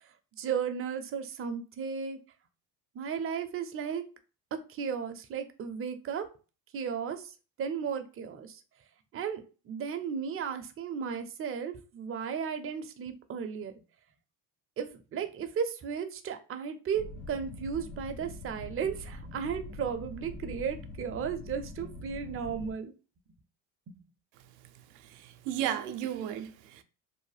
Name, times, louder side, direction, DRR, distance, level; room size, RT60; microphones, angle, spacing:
voice 1, 0.4-2.2 2.9-4.0 4.5-6.3 6.7-7.3 7.6-8.6 9.1-13.7 14.8-22.9 23.9-24.0, right 7 dB, 30° right, 0.5 m, -35 dB
sound 1, 16.9-22.7, left 2 dB, 80° left, 0.9 m, -44 dB
voice 2, 25.1-26.8, right 10 dB, 80° right, 0.6 m, -34 dB
2.7 x 2.1 x 3.2 m
hypercardioid pair, 75°, 49 cm